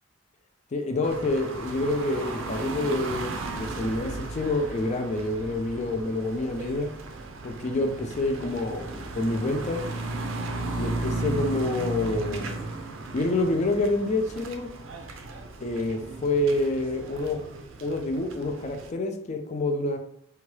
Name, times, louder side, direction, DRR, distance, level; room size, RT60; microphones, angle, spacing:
voice 1, 0.7-6.9 7.4-9.9 10.8-12.6 13.1-14.7 15.6-17.5 17.8-20.0, left 2 dB, 35° left, 5 dB, 0.4 m, -27 dB
sound 1, 1.0-18.9, right 2 dB, 80° right, 0.4 m, -35 dB
2.8 x 2.2 x 3.1 m, 0.67 s
head